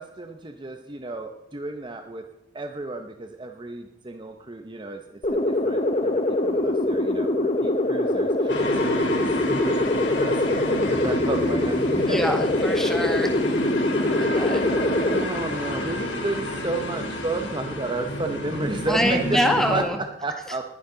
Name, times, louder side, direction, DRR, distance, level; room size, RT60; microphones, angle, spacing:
voice 1, 0.0-2.2 2.5-5.0 5.3-5.4 5.6-12.4 15.1-19.4 19.7-20.6, right 2 dB, 25° right, 5 dB, 0.8 m, -32 dB
sound 1, 5.2-15.2, left 1 dB, 35° left, 1.2 m, -23 dB
sound 2, 8.5-19.8, left 1 dB, 90° left, 3.2 m, -30 dB
voice 2, 12.1-13.5 14.2-14.6 18.9-20.0, equal, 5° left, 3 dB, 1.8 m, -25 dB
20.5 x 10.5 x 3.9 m, 0.87 s
head